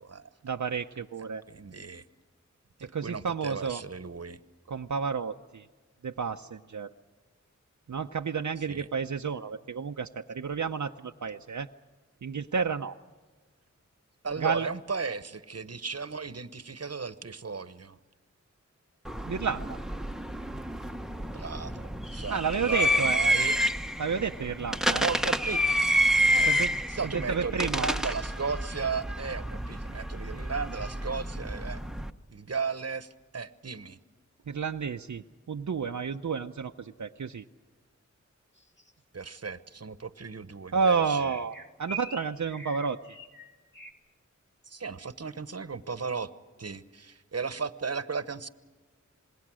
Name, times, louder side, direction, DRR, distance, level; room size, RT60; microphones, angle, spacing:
voice 1, 0.4-1.4 2.8-3.8 4.7-5.7 6.0-6.9 7.9-11.7 12.2-13.0 14.4-14.7 19.2-19.8 22.3-23.2 24.0-25.0 26.5-26.7 27.0-27.8 34.5-37.4 40.7-43.2, right 6 dB, 75° right, 5 dB, 0.7 m, -31 dB
voice 2, 1.5-2.0 2.8-4.4 8.7-8.9 14.2-18.0 21.3-22.4 22.7-23.5 25.0-25.6 26.3-26.6 26.9-31.8 32.3-34.0 39.1-41.3 44.7-46.3 46.6-48.5, right 5 dB, 55° right, 13 dB, 1.1 m, -35 dB
sound 1, 19.0-32.1, equal, ahead, 1.0 m, -29 dB
sound 2, 38.6-38.9 41.2-43.9, right 3 dB, 40° left, 2.5 m, -43 dB
26.5 x 21.0 x 6.3 m, 1.3 s
wide cardioid pair, 45°, 30 cm